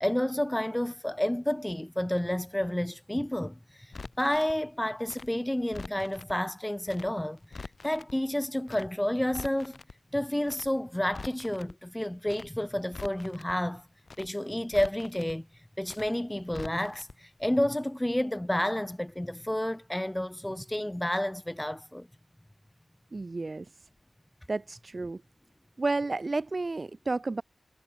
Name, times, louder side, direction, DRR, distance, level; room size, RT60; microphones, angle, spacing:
voice 1, 0.0-3.6 4.2-7.4 7.8-9.8 10.1-13.8 14.2-15.5 15.8-22.1, left 1 dB, 10° left, 1.1 m, -30 dB
Crackle, 3.9-4.5 5.1-6.3 6.8-7.1 7.4-8.1 8.7-8.9 9.2-9.9 10.4-10.7 11.0-11.7 12.2-12.5 12.8-13.5 14.0-14.3 14.6-15.3 15.8-16.1 16.4-17.1 17.4-17.5, left 4 dB, 60° left, 5.4 m, -44 dB
voice 2, 23.1-23.7 24.5-25.2 25.8-27.4, right 3 dB, 45° right, 0.3 m, -31 dB
wide cardioid pair, 60°, 0 cm